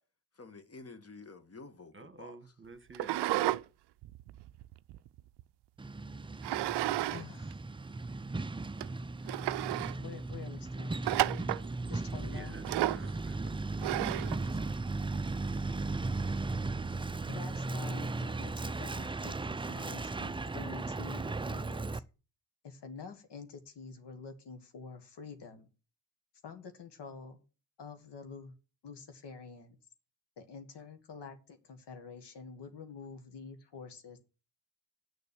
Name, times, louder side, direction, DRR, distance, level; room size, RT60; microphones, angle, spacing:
voice 1, 0.4-2.4, left 3 dB, 30° left, 1.4 m, -50 dB
voice 2, 1.9-3.2 12.3-14.6, right 3 dB, 25° right, 1.2 m, -53 dB
sound 1, 2.9-3.6 4.0-5.4 6.4-7.2 7.5-7.6 8.3-8.4 8.8-8.9 9.3-10.0 11.0-11.7 12.6-13.1 13.8-14.4, right 16 dB, 65° right, 0.5 m, -32 dB
Truck, 5.8-22.0, right 3 dB, 10° right, 0.4 m, -36 dB
voice 3, 7.1-7.6 9.8-11.5 11.9-12.6 17.3-22.0 22.6-25.7 26.4-27.4 27.8-28.6 28.8-29.8 30.4-34.2, left 5 dB, 65° left, 1.7 m, -48 dB
6.7 x 6.5 x 6.9 m
hypercardioid pair, 40°, 44 cm